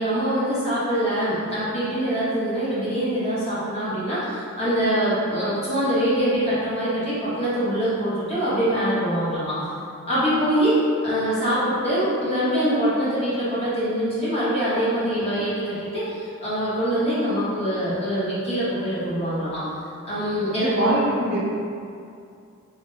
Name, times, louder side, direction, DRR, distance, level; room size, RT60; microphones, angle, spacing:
voice 1, 0.0-9.6 10.1-19.6 20.0-20.9, equal, 30° left, -11 dB, 1.0 m, -24 dB
voice 2, 20.5-21.4, right 1 dB, 50° right, -5 dB, 0.6 m, -23 dB
3.4 x 2.6 x 3.2 m, 2.4 s
head